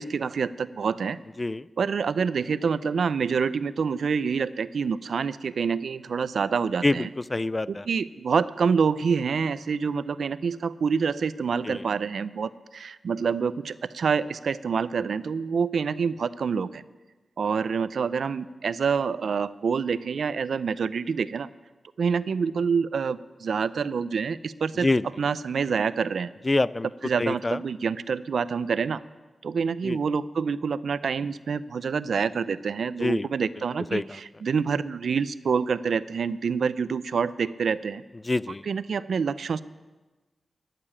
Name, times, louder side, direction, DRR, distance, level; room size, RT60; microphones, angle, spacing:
voice 1, 0.0-1.2 1.8-7.1 7.7-16.8 17.4-21.5 22.0-26.3 27.0-29.0 29.4-38.0 38.6-39.6, right 6 dB, 85° right, 16 dB, 0.4 m, -27 dB
voice 2, 7.3-7.9 11.7-11.8 24.8-25.0 26.5-26.9 27.2-27.6 29.8-30.0 33.0-33.3 33.9-34.0 38.3-38.6, left 2 dB, 30° left, 19 dB, 0.3 m, -25 dB
14.5 x 6.8 x 9.8 m, 1.2 s
wide cardioid pair, 95°, 0 cm